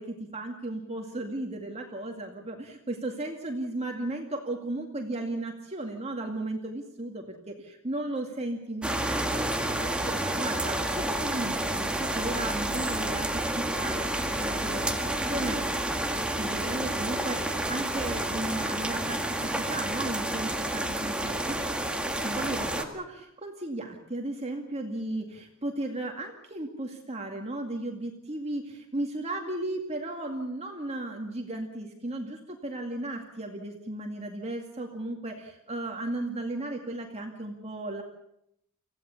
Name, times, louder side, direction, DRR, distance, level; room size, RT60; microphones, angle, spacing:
voice 1, 0.0-15.6 16.4-21.6 22.2-38.0, right 2 dB, 30° right, 2 dB, 2.2 m, -35 dB
sound 1, 8.8-22.8, right 1 dB, 5° right, 1.8 m, -30 dB
25.5 x 16.0 x 7.1 m, 0.77 s
head